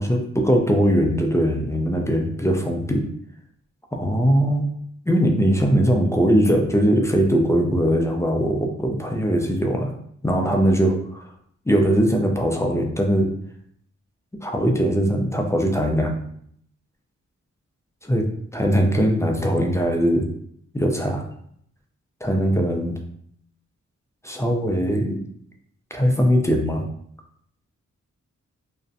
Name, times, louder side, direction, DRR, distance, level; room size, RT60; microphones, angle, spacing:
voice 1, 0.0-3.0 3.9-4.7 5.1-9.9 10.2-11.2 11.7-13.3 14.4-16.2 18.0-20.3 20.7-21.3 22.2-23.0 24.2-25.2 25.9-26.8, equal, 10° left, 2 dB, 0.3 m, -20 dB
2.5 x 2.1 x 2.5 m, 0.67 s
cardioid pair, 60°, 30 cm